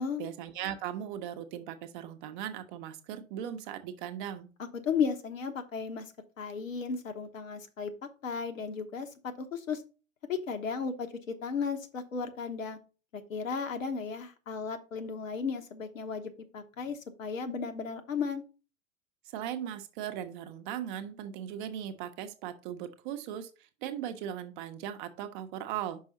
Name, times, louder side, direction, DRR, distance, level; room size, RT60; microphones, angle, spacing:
voice 1, 0.2-4.5 19.2-26.0, right 10 dB, 35° right, 8 dB, 0.8 m, -38 dB
voice 2, 4.6-6.1 6.4-7.9 8.2-9.8 10.3-12.8 13.1-18.4, left 5 dB, 70° left, 7 dB, 1.1 m, -35 dB
5.5 x 5.3 x 3.8 m, 0.33 s
figure-of-eight pair, 105°, 41 cm